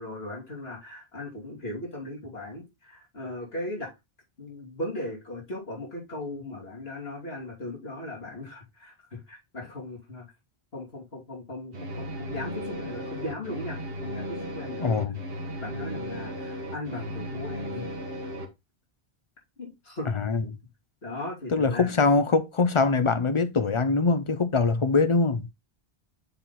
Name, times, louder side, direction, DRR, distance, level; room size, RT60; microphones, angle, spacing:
voice 1, 0.0-3.9 4.4-10.3 10.7-15.1 15.6-18.0 19.6-20.2 21.0-22.0, left 1 dB, 70° left, 3.4 m, -38 dB
sound 1, 11.7-18.5, equal, 65° right, 1.4 m, -35 dB
voice 2, 14.8-15.2 20.1-20.4 21.5-25.5, left 4 dB, 35° left, 0.6 m, -23 dB
6.9 x 3.9 x 4.1 m
omnidirectional pair, 1.1 m